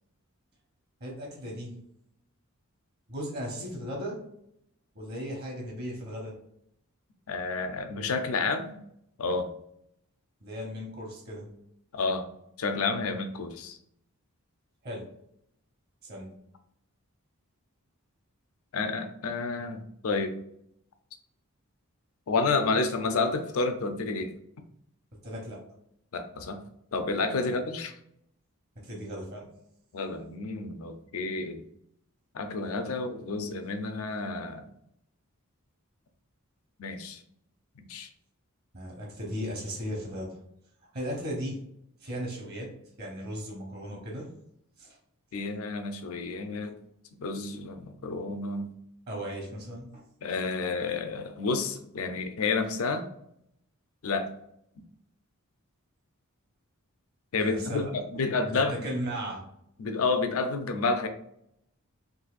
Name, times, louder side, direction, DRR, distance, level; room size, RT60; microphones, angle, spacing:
voice 1, 1.0-1.7 3.1-4.2 4.9-6.4 10.4-11.5 14.8-15.1 16.0-16.3 25.2-25.6 27.4-27.5 28.8-29.5 38.7-40.4 40.9-41.6 42.0-42.7 43.0-44.3 44.8-44.9 49.1-50.0 57.4-57.9 58.7-59.4, equal, 45° right, -1 dB, 0.9 m, -36 dB
voice 2, 7.3-8.8 9.2-9.5 11.9-12.3 12.6-13.8 18.7-20.3 22.3-24.3 26.1-26.6 26.9-28.0 29.9-31.6 32.3-34.7 36.8-37.2 37.9-38.1 45.3-46.7 47.2-48.7 50.2-53.1 54.0-54.3 57.3-58.9 59.8-61.1, left 3 dB, 70° left, 7 dB, 0.5 m, -30 dB
3.9 x 2.5 x 2.4 m, 0.73 s
head